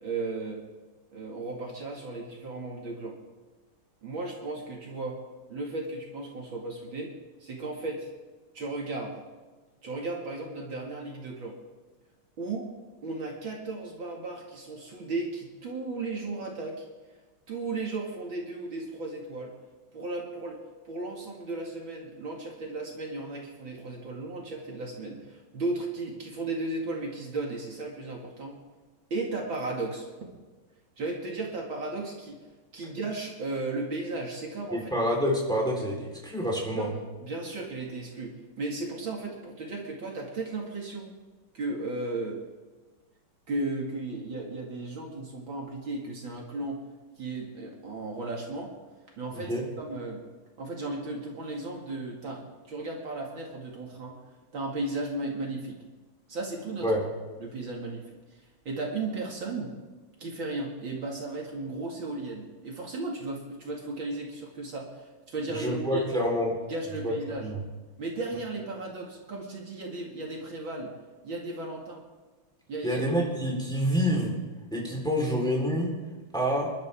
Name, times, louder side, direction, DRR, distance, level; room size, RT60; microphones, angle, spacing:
voice 1, 0.0-0.6 1.1-3.2 4.0-5.2 5.5-7.1 7.4-8.1 8.5-9.2 9.8-11.6 12.4-12.7 13.0-16.9 17.5-19.6 19.9-28.6 29.1-30.1 31.0-32.4 32.7-34.9 36.7-36.9 37.2-41.1 41.5-42.4 43.5-46.8 47.2-48.7 49.2-50.2 50.6-54.2 54.5-55.8 56.3-56.9 57.4-58.1 58.6-59.8 60.2-66.1 66.7-67.5 68.0-70.9 71.2-72.0 72.7-73.0, right 2 dB, 60° right, -1 dB, 3.0 m, -35 dB
voice 2, 34.7-36.9 49.3-49.6 56.8-57.1 65.5-66.6 67.0-67.6 72.8-74.4 74.7-76.0 76.3-76.7, equal, ahead, -2 dB, 4.0 m, -27 dB
28.0 x 12.0 x 3.7 m, 1.3 s
omnidirectional pair, 2.4 m